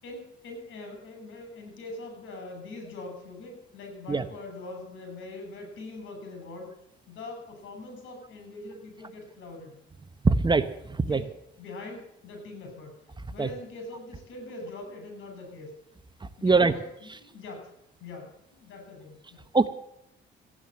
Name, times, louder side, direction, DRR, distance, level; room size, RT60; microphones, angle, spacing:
voice 1, 0.0-6.7 7.1-9.7 11.1-11.3 11.6-12.9 13.3-15.8 16.4-17.7 18.0-19.4, left 2 dB, 75° left, 4 dB, 6.7 m, -42 dB
voice 2, 10.2-10.7 11.1-11.2 13.4-13.5 16.4-16.7 19.5-19.7, right 4 dB, 25° right, 12 dB, 1.0 m, -21 dB
15.5 x 10.0 x 7.7 m, 0.80 s
cardioid pair, 90°, 20 cm